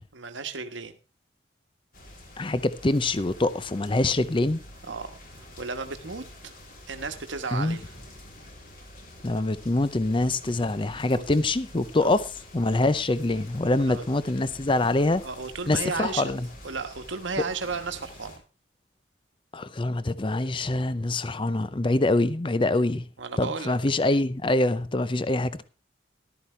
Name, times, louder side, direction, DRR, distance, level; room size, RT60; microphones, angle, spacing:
voice 1, 0.1-0.9 4.9-5.2 5.6-6.2 6.9-7.9 11.1-11.2 12.0-12.1 13.7-14.0 15.2-16.3 16.6-18.4 23.2-24.0, right 4 dB, 75° right, 1.3 m, -34 dB
sound 1, 1.9-18.4, left 1 dB, 45° left, 3.3 m, -47 dB
voice 2, 2.4-4.6 7.5-7.8 9.2-15.2 15.7-16.5 19.5-23.1 23.4-25.6, left 2 dB, 25° left, 0.6 m, -25 dB
14.0 x 12.5 x 3.3 m
head